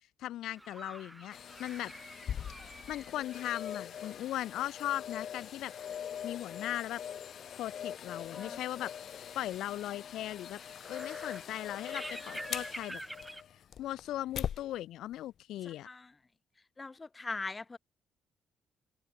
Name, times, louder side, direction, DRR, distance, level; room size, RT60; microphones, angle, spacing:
voice 1, 0.2-1.9 2.9-5.7 6.2-7.0 7.6-8.9 9.3-10.6 10.9-13.0 13.8-15.9, left 13 dB, 85° left, 3.4 m, -38 dB
sound 1, 0.5-13.4, right 1 dB, 10° right, 5.8 m, -50 dB
sound 2, 1.3-14.6 15.1-15.2, left 9 dB, 65° left, 7.5 m, -42 dB
voice 2, 15.6-16.1 16.8-17.8, left 3 dB, 25° left, 1.5 m, -41 dB
cardioid pair, 90°, 0 cm